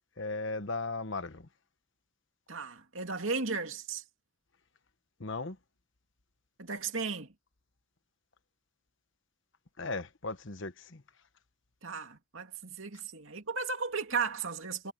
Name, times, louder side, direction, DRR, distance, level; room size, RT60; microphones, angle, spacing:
voice 1, 0.2-1.5 5.2-5.6 9.8-11.0, left 3 dB, 55° left, 1.2 m, -37 dB
voice 2, 2.5-4.0 6.6-7.3 11.8-14.9, right 4 dB, 60° right, 2.7 m, -35 dB
head